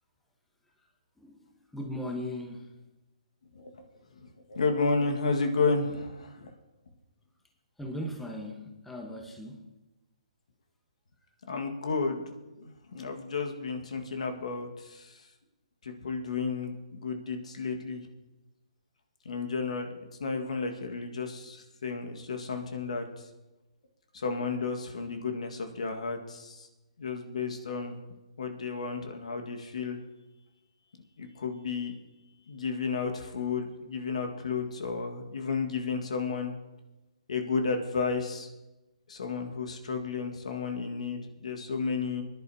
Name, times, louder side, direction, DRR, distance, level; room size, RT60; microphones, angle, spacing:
voice 1, 1.2-2.7 7.8-9.7, left 1 dB, 5° left, 1 dB, 1.2 m, -38 dB
voice 2, 4.1-6.5 11.5-12.2 12.6-15.2 15.8-18.1 19.2-19.9 20.2-23.3 24.1-26.7 27.0-28.0 28.4-30.0 31.2-32.0 32.5-36.5 37.3-38.5 39.1-42.2, left 4 dB, 70° left, 4 dB, 1.7 m, -32 dB
21.5 x 11.0 x 2.8 m, 1.1 s
hypercardioid pair, 140°, 4 cm